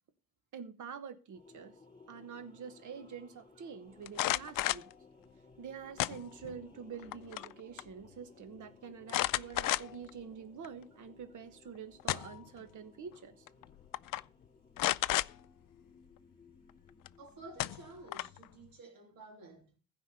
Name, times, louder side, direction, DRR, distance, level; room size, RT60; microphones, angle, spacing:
voice 1, 0.5-1.7 2.1-4.9 5.6-13.5, right 6 dB, 60° right, 1.3 m, -47 dB
sound 1, 1.3-18.3, left 4 dB, 15° left, 3.5 m, -60 dB
sound 2, 4.1-4.9 6.0-6.6 7.0-7.5 7.8-7.9 9.1-10.1 10.6-10.7 11.8-12.5 13.5-13.6 13.9-14.2 14.8-15.3 17.1-17.2 17.6-18.4, left 15 dB, 75° left, 0.5 m, -32 dB
voice 2, 17.2-19.8, right 2 dB, 90° right, 3.0 m, -52 dB
15.5 x 5.2 x 6.8 m
cardioid pair, 85°, 33 cm